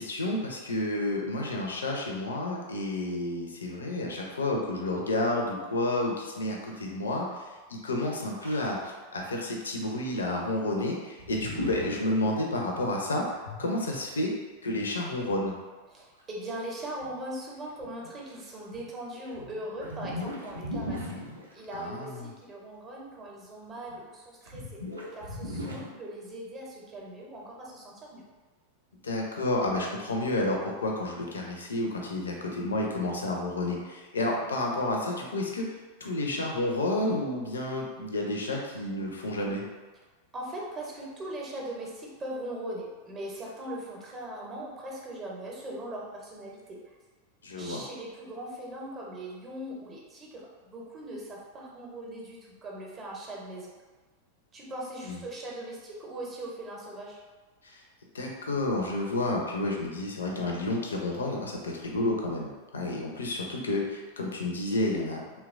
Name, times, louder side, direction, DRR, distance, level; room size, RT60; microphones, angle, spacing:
voice 1, 0.0-7.3 7.7-14.3 14.6-15.5 21.7-22.2 29.0-35.7 36.0-39.6 47.4-47.8 55.0-55.2 57.6-57.8 58.1-65.2, left 1 dB, 70° left, 0 dB, 0.4 m, -30 dB
sound 1, 8.4-8.9 9.2-9.3 9.5-9.6 9.9-10.0 11.2-12.1 13.5-14.0 16.2-16.3 17.0-17.1 17.7-18.3 18.7-21.6 23.9-24.0 24.5-25.9, left 1 dB, 80° right, 0.5 m, -38 dB
voice 2, 15.9-21.0 21.5-24.6 25.2-28.2 40.3-46.9 47.5-53.7 54.5-57.2, right 1 dB, 25° right, -3 dB, 0.7 m, -40 dB
2.9 x 2.2 x 2.4 m, 1.3 s
figure-of-eight pair, 90°, 0 cm